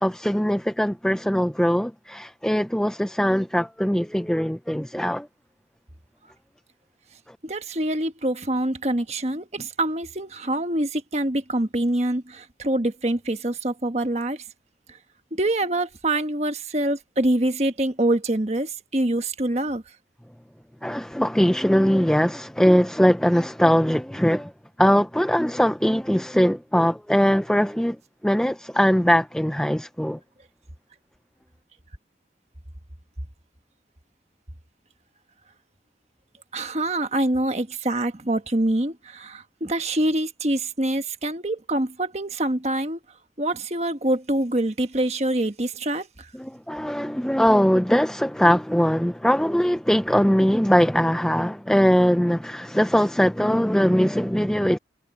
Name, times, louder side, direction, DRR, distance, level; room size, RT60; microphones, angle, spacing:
voice 1, 0.0-5.3 7.3-7.4 20.8-24.5 24.8-28.0 28.2-30.2 46.3-54.8, equal, 5° left, 0.5 m, -21 dB
voice 2, 7.4-14.4 15.3-19.8 36.5-43.0 43.4-46.3, right 1 dB, 40° right, 1.4 m, -25 dB
head